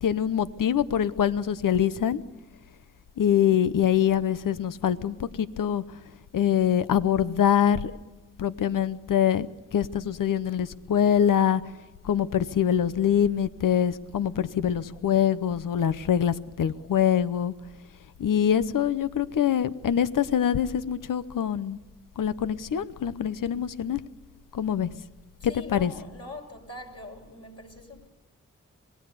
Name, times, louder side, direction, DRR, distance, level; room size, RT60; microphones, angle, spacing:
voice 1, 0.0-2.2 3.2-6.0 6.3-8.0 8.4-9.5 9.7-11.6 12.0-17.5 18.2-21.8 22.2-24.0 24.5-24.9 25.4-25.9, left 9 dB, 80° left, 0.9 m, -24 dB
voice 2, 25.4-28.1, left 2 dB, 50° left, 6.6 m, -43 dB
26.0 x 19.0 x 6.9 m
cardioid pair, 45°, 32 cm